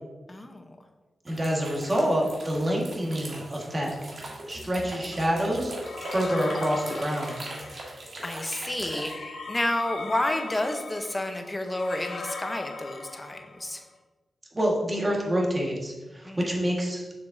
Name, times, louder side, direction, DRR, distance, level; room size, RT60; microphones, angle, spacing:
voice 1, 0.3-0.6 7.7-7.9 8.2-13.8 16.2-16.4, left 1 dB, 20° left, 5 dB, 0.8 m, -30 dB
voice 2, 1.2-3.9 4.5-5.7 6.1-7.4 14.5-17.0, equal, 25° right, -2 dB, 1.7 m, -27 dB
sound 1, 1.3-9.1, right 1 dB, 60° right, 1.8 m, -40 dB
sound 2, 5.8-8.0 8.9-13.8, left 3 dB, 85° left, 0.9 m, -39 dB
6.9 x 6.5 x 2.7 m, 1.2 s
wide cardioid pair, 90°, 0 cm